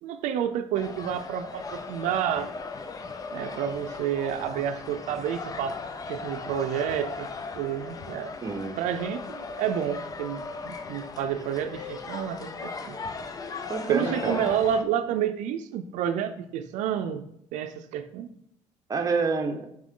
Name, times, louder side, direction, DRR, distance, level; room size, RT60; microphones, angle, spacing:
voice 1, 0.0-2.5 3.3-5.8 6.1-7.3 7.6-8.3 8.8-13.0 13.9-17.3 17.5-18.3, right 9 dB, 85° right, 0.5 m, -29 dB
sound 1, 0.7-14.8, left 4 dB, 30° left, 0.6 m, -38 dB
voice 2, 8.4-8.8 13.7-14.5 18.9-19.7, right 4 dB, 25° right, 0.8 m, -28 dB
6.5 x 6.1 x 3.7 m
cardioid pair, 130°, 12 cm